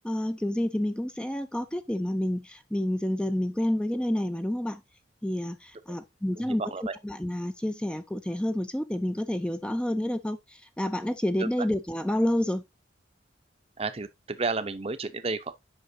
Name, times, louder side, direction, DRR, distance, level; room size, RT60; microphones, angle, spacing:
voice 1, 0.0-4.8 5.2-6.6 7.0-10.4 10.8-12.6, left 1 dB, 5° left, 0.4 m, -29 dB
voice 2, 6.3-6.9 11.4-11.5 13.8-15.6, right 3 dB, 30° right, 0.7 m, -32 dB
8.1 x 5.7 x 2.7 m
head